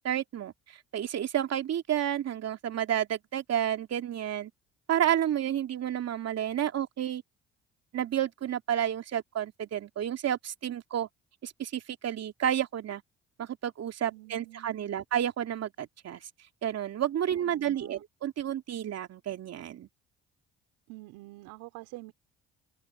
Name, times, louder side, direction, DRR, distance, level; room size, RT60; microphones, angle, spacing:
voice 1, 0.0-4.5 4.9-7.2 7.9-11.1 11.4-13.0 13.4-16.2 16.6-19.9, right 10 dB, 55° right, 2.7 m, -31 dB
voice 2, 14.1-14.9 17.3-18.0 20.9-22.1, right 21 dB, 80° right, 4.3 m, -47 dB
open air
hypercardioid pair, 60°, 30 cm